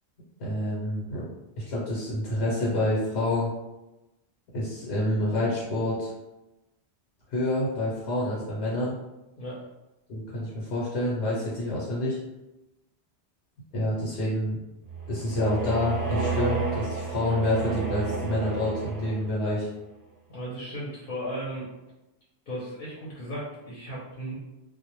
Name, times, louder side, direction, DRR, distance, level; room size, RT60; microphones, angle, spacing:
voice 1, 0.4-1.2 1.6-3.5 4.5-6.1 7.3-8.9 10.1-12.2 13.7-14.6 15.1-19.7, left 1 dB, 90° left, -5 dB, 1.0 m, -28 dB
sound 1, 14.8-19.5, right 4 dB, 25° right, 0.5 m, -31 dB
voice 2, 20.3-21.7 22.5-24.4, equal, 60° left, -7 dB, 0.8 m, -35 dB
2.1 x 2.0 x 2.9 m, 0.98 s
omnidirectional pair, 1.1 m